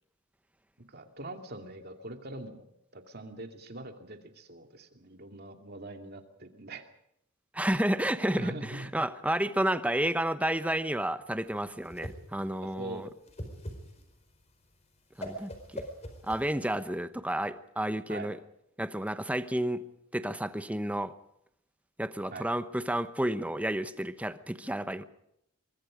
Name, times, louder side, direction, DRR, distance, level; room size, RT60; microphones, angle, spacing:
voice 1, 0.9-2.6 2.9-6.8 8.4-8.9 12.8-13.1 15.2-15.4 18.1-18.3 22.3-22.5, right 1 dB, 50° right, 5 dB, 2.4 m, -43 dB
voice 2, 7.5-13.1 15.2-15.9 16.2-18.4 18.8-19.8 20.1-21.1 22.0-25.0, right 1 dB, 5° right, 11 dB, 0.9 m, -31 dB
Whoosh swoosh swish, 11.4-16.9, equal, 30° left, 4.5 m, -43 dB
24.0 x 23.0 x 5.1 m, 0.78 s
head